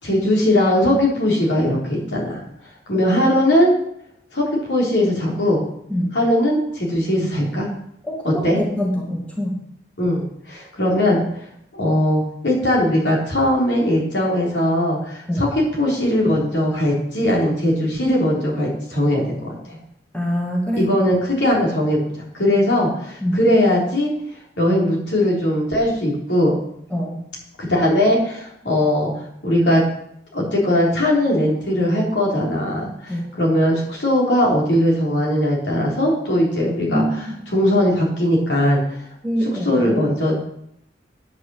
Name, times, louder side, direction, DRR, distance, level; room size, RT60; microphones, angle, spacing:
voice 1, 0.0-2.4 2.9-3.7 4.3-5.6 6.1-7.7 8.2-8.6 10.0-11.2 11.7-19.8 20.8-22.0 22.3-24.1 24.6-26.5 27.6-29.1 29.4-29.8 30.3-37.0 37.5-39.0 39.6-40.3, left 1 dB, 90° left, -3 dB, 3.7 m, -19 dB
voice 2, 8.0-9.6 15.3-15.4 20.1-20.9 23.2-23.4 26.9-27.2 33.1-33.3 36.9-37.3 39.2-39.7, equal, 5° left, -3 dB, 2.1 m, -24 dB
9.4 x 5.9 x 7.7 m, 0.73 s
head